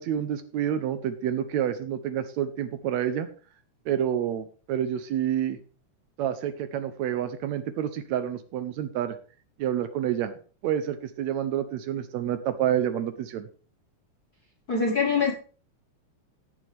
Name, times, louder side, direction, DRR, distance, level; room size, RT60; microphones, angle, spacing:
voice 1, 0.0-3.3 3.9-5.6 6.2-9.2 9.6-10.3 10.6-13.5, right 10 dB, 75° right, 11 dB, 1.9 m, -28 dB
voice 2, 14.7-15.3, left 5 dB, 50° left, -1 dB, 1.2 m, -23 dB
16.0 x 6.8 x 3.4 m, 0.39 s
omnidirectional pair, 3.5 m